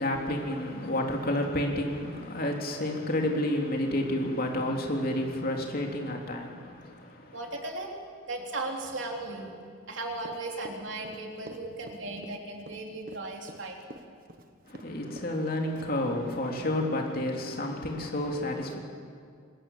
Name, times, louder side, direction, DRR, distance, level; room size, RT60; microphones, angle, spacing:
voice 1, 0.0-7.3 14.7-18.8, left 1 dB, 50° left, 1 dB, 3.1 m, -30 dB
voice 2, 7.3-7.9 8.3-14.0, right 2 dB, 65° right, 1 dB, 3.4 m, -37 dB
Run, 10.2-14.9 15.2-15.4 15.7-16.1, right 2 dB, 45° right, 1.3 m, -47 dB
25.5 x 20.5 x 7.3 m, 2.2 s
head